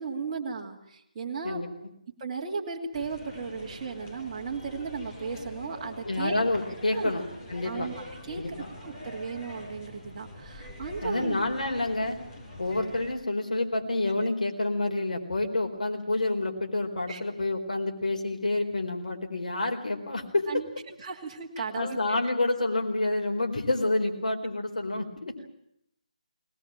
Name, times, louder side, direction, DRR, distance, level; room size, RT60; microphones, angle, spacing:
voice 1, 0.0-1.6 2.2-6.4 6.9-7.1 7.6-7.9 8.2-8.4 8.8-11.3 17.1-17.2 20.5-22.2, right 5 dB, 30° right, -2 dB, 2.8 m, -35 dB
sound 1, 2.9-13.1, left 1 dB, 20° left, 6.2 m, -44 dB
voice 2, 6.0-7.2 7.5-7.9 8.3-8.7 11.0-12.2 12.6-20.5 21.7-25.5, left 2 dB, 70° left, 2 dB, 4.5 m, -28 dB
21.5 x 20.0 x 9.0 m, 0.74 s
figure-of-eight pair, 155°, 4 cm